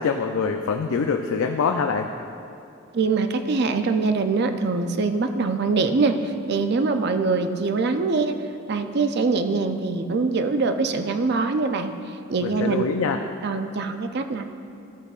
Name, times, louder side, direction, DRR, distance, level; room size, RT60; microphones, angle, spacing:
voice 1, 0.0-2.1 12.4-13.2, left 5 dB, 90° left, 4 dB, 0.4 m, -24 dB
voice 2, 2.9-8.4 8.7-11.9 12.3-12.8 13.4-14.6, right 4 dB, 50° right, 8 dB, 0.5 m, -23 dB
13.5 x 8.1 x 2.4 m, 2.6 s
head